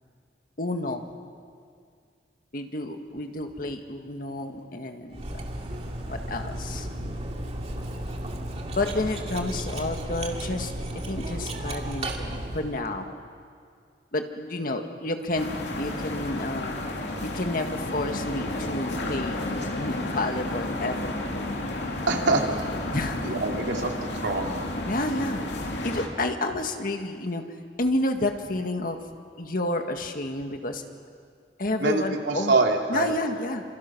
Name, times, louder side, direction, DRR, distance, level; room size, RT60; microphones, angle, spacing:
voice 1, 0.6-1.0 2.5-5.4 6.1-7.1 8.7-10.7 11.1-13.1 14.1-15.5 15.8-16.8 17.2-19.4 19.7-21.6 22.9-23.3 24.8-25.4 25.8-27.4 27.8-29.0 29.4-30.8 31.6-32.5 32.9-33.6, left 2 dB, 55° left, 5 dB, 1.9 m, -30 dB
Cutlery silverware, 5.1-12.9, right 1 dB, 35° right, 2.3 m, -34 dB
sound 1, 15.4-26.1, left 1 dB, 75° left, 2.9 m, -31 dB
voice 2, 22.1-22.7 23.2-23.9 24.2-24.7 31.8-33.1, right 3 dB, 85° right, 1 dB, 2.9 m, -25 dB
27.0 x 27.0 x 6.1 m, 2.2 s
head